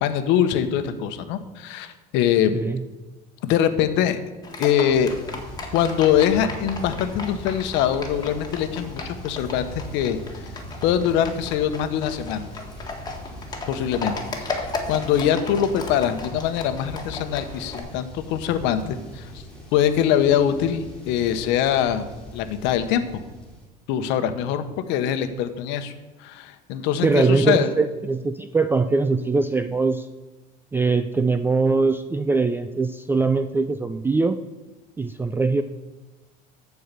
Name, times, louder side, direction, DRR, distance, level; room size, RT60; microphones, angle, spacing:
voice 1, 0.0-2.6 3.4-4.2 4.6-5.1 5.7-10.2 10.8-12.5 13.7-19.3 19.7-22.1 22.3-23.2 23.9-25.9 26.2-27.7, left 9 dB, 70° left, 9 dB, 1.0 m, -23 dB
Livestock farm animals working animals, 4.4-17.8, left 3 dB, 20° left, 1.8 m, -36 dB
sound 1, 4.9-23.7, equal, 5° left, 2.6 m, -40 dB
voice 2, 27.0-30.1 30.7-34.4 35.0-35.6, right 3 dB, 10° right, 10 dB, 0.4 m, -22 dB
13.5 x 4.7 x 6.8 m, 1.1 s
supercardioid pair, 120°, 19 cm